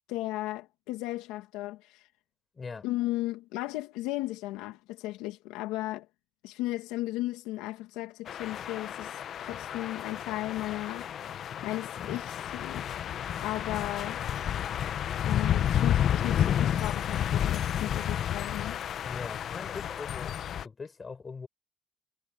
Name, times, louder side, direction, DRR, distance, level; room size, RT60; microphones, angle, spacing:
voice 1, 0.1-2.1 2.8-6.1 6.4-11.1 11.6-12.9 13.4-14.2 15.3-19.1, left 17 dB, 85° left, 1.9 m, -35 dB
voice 2, 2.5-2.9 19.0-20.3 20.6-21.5, left 4 dB, 35° left, 5.5 m, -41 dB
sound 1, 8.3-20.7, left 10 dB, 65° left, 1.0 m, -31 dB
supercardioid pair, 60°, 0 cm